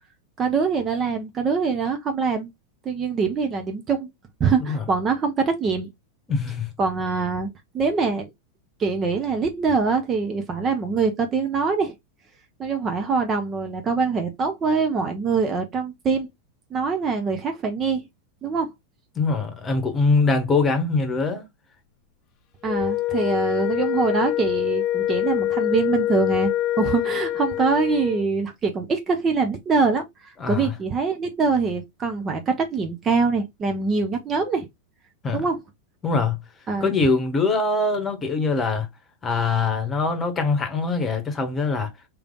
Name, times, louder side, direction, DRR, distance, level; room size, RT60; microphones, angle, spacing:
voice 1, 0.4-2.5 2.8-4.1 4.4-5.9 6.8-8.3 8.8-11.9 12.6-16.3 16.7-18.0 18.4-18.7 22.6-34.7 35.3-35.6 36.7-36.9, right 4 dB, 25° right, 0.8 m, -24 dB
voice 2, 6.3-6.7 19.1-21.4 30.4-30.7 35.2-35.5 36.0-36.4 36.8-38.9 39.2-41.9, left 3 dB, 20° left, 1.2 m, -23 dB
Wind instrument woodwind instrument, 22.6-28.3, left 13 dB, 40° left, 0.6 m, -25 dB
3.3 x 3.1 x 3.6 m
figure-of-eight pair, 90°, 0 cm